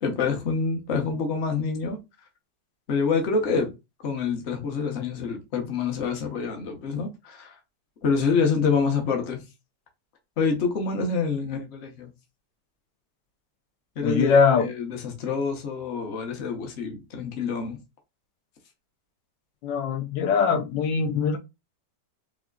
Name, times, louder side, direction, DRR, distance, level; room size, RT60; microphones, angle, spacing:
voice 1, 0.0-2.0 2.9-3.8 4.0-7.5 8.0-9.5 10.4-12.1 14.0-17.8, left 5 dB, 45° left, 1.0 m, -27 dB
voice 2, 14.0-14.7 19.6-21.4, left 5 dB, 80° left, 1.3 m, -22 dB
4.8 x 2.8 x 2.3 m
omnidirectional pair, 1.9 m